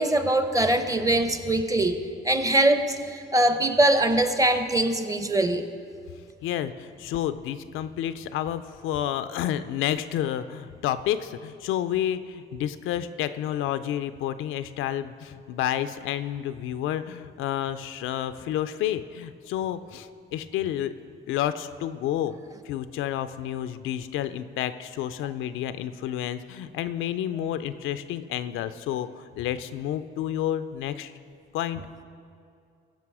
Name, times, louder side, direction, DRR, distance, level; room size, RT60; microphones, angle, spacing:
voice 1, 0.0-5.6, right 1 dB, 15° right, 9 dB, 0.7 m, -22 dB
voice 2, 6.4-20.9 21.3-22.3 22.7-31.1 31.5-31.8, left 11 dB, 85° left, 12 dB, 0.4 m, -30 dB
15.5 x 5.9 x 4.8 m, 2.4 s
cardioid pair, 90°, 20 cm